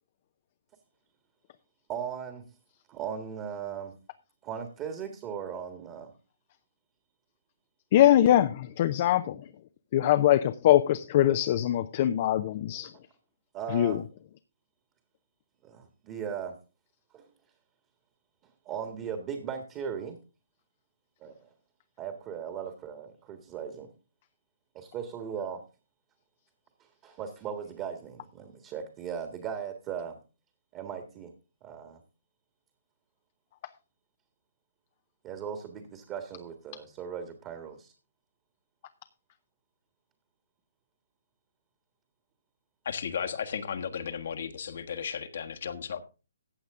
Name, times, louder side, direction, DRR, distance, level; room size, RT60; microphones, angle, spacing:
voice 1, 1.9-2.5 2.9-3.9 4.4-6.1 13.5-14.0 15.6-16.6 17.1-17.3 18.7-20.2 21.2-21.5 22.0-23.9 24.7-25.6 27.0-30.2 30.7-31.3 31.6-32.0 35.2-37.9, right 7 dB, 25° right, 6 dB, 1.6 m, -38 dB
voice 2, 7.9-9.4 9.9-12.9 13.7-14.0, left 12 dB, 40° left, 10 dB, 0.6 m, -22 dB
voice 3, 42.8-46.0, left 7 dB, 60° left, 8 dB, 1.4 m, -34 dB
14.5 x 8.0 x 3.7 m, 0.33 s
hypercardioid pair, 145°, 0 cm